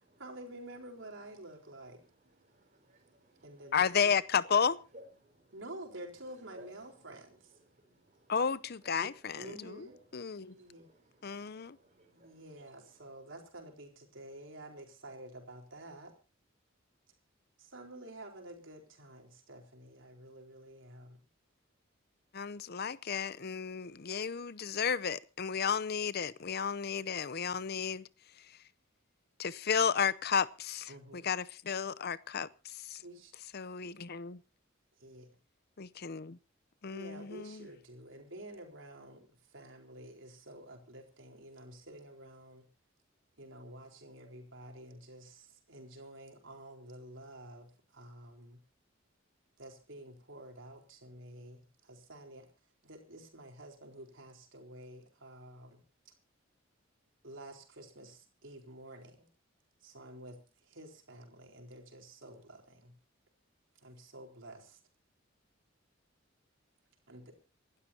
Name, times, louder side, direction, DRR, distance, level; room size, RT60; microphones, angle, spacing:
voice 1, 0.2-2.0 3.4-4.1 5.5-7.5 8.9-10.0 10.5-10.9 12.1-16.2 17.6-21.2 30.9-31.3 33.0-33.3 35.0-35.4 36.9-42.7 43.4-48.6 49.6-52.5 52.8-55.8 57.2-59.3 59.8-63.0 63.8-64.8 67.1-67.4, right 1 dB, 70° right, 4.2 m, -50 dB
voice 2, 1.8-3.7 4.4-4.5 4.9-5.6 6.4-6.7 7.2-8.4 8.8-9.2 9.9-12.8, equal, 40° right, 4.0 m, -60 dB
voice 3, 3.7-4.8 8.3-9.9 10.1-10.5 11.2-11.8 22.3-28.1 29.4-33.0 33.5-34.4 35.8-36.4 36.8-37.7, left 6 dB, 50° left, 0.7 m, -33 dB
27.5 x 12.5 x 2.9 m
head